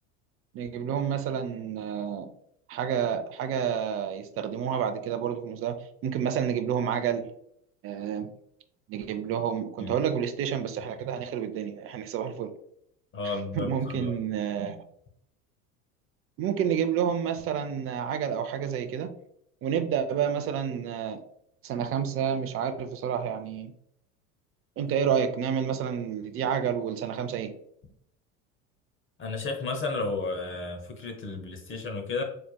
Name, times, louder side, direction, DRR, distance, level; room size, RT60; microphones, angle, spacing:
voice 1, 0.5-2.3 2.7-7.3 7.8-8.3 8.9-12.5 13.6-14.8 16.4-19.2 19.6-21.2 21.6-23.7 24.8-27.5, right 8 dB, 30° right, 8 dB, 0.5 m, -29 dB
voice 2, 13.1-14.1 29.2-32.2, left 3 dB, 30° left, 3 dB, 0.9 m, -33 dB
4.3 x 3.2 x 2.2 m, 0.72 s
hypercardioid pair, 85°, 43 cm